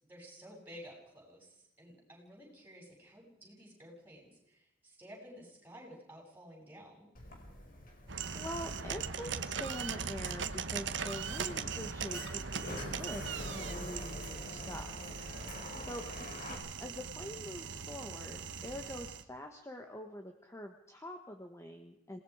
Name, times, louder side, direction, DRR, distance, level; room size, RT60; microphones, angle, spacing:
voice 1, 0.1-7.1 15.7-15.9, equal, 10° right, -2 dB, 7.9 m, -53 dB
Sliding door, 7.2-16.6, left 1 dB, 50° left, 5.2 m, -47 dB
sound 1, 8.1-19.2, right 6 dB, 70° right, 1.2 m, -40 dB
voice 2, 8.3-14.9 15.9-16.0 16.5-22.2, left 1 dB, 15° left, 4 dB, 1.4 m, -45 dB
27.0 x 19.5 x 5.0 m, 0.80 s
head